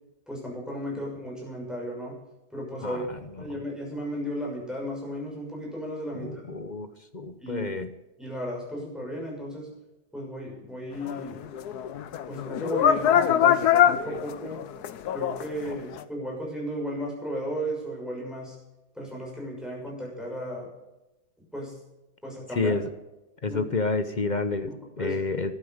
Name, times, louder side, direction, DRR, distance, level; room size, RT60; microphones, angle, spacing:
voice 1, 0.3-2.2 2.5-3.0 3.4-6.4 7.4-7.7 8.2-9.7 10.1-11.4 12.3-14.6 15.1-18.6 18.9-20.7 21.5-21.7 22.2-22.8 23.5-23.6 24.7-25.2, equal, ahead, -3 dB, 6.3 m, -35 dB
voice 2, 2.8-3.6 6.1-6.9 7.1-7.9 15.7-15.8 22.5-22.8 23.4-24.7 25.0-25.5, left 3 dB, 40° left, 10 dB, 0.6 m, -29 dB
sound 1, 11.1-15.5 16.0-16.1, left 9 dB, 70° left, 1.3 m, -23 dB
14.0 x 11.5 x 6.6 m, 0.99 s
omnidirectional pair, 1.8 m